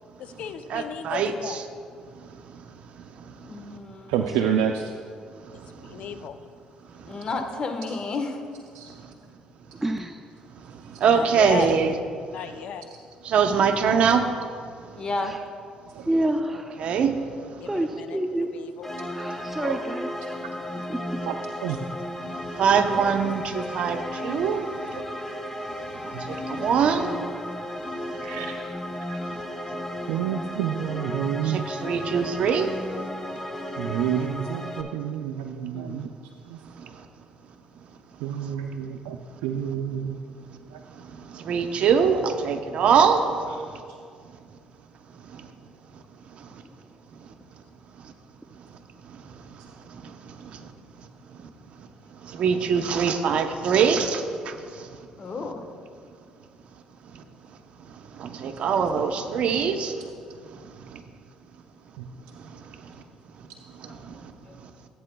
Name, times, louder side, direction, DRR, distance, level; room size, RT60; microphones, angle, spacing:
voice 1, 0.2-1.6 5.5-6.4 11.1-11.7 12.3-12.9 17.6-18.9, left 8 dB, 70° left, 10 dB, 0.5 m, -35 dB
voice 2, 0.7-1.6 11.0-11.9 13.2-14.2 16.8-17.1 22.6-24.6 26.0-27.1 31.4-32.7 41.4-43.2 52.3-54.5 58.2-59.9 63.8-63.9, right 6 dB, 65° right, 6 dB, 0.8 m, -22 dB
voice 3, 3.4-4.4 7.1-8.4 15.0-15.3 35.7-36.1 55.2-55.6 63.1-63.2 63.8-64.5, left 3 dB, 40° left, 5 dB, 1.2 m, -33 dB
voice 4, 4.1-4.9 8.7-8.9 12.4-12.5 16.0-16.1 19.6-19.8 21.2-21.4 21.6-21.8 25.0-25.1 26.1-26.2 28.2-28.6 29.1-29.2 30.1-31.7 33.8-36.1 36.5-36.6 38.2-40.2 40.7-40.8 62.0-62.1, right 9 dB, 90° right, 4 dB, 0.4 m, -29 dB
voice 5, 16.1-16.7 17.7-18.5 19.1-20.1 20.9-21.0, right 1 dB, 10° right, 5 dB, 0.5 m, -27 dB
sound 1, 18.8-34.8, left 1 dB, 15° left, 0.8 m, -34 dB
15.0 x 8.4 x 2.3 m, 2.2 s
supercardioid pair, 75°, 2 cm